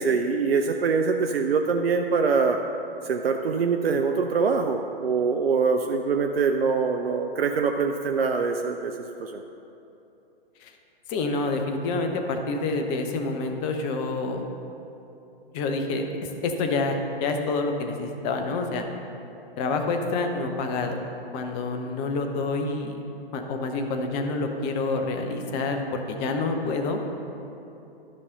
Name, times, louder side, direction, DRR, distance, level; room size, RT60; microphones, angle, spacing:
voice 1, 0.0-2.6 3.0-9.4, right 5 dB, 70° right, 5 dB, 0.5 m, -24 dB
voice 2, 11.1-14.4 15.5-18.8 19.6-21.0 21.3-23.0 23.3-27.0, left 3 dB, 15° left, 4 dB, 0.5 m, -27 dB
12.5 x 5.5 x 3.9 m, 2.9 s
figure-of-eight pair, 120°, 31 cm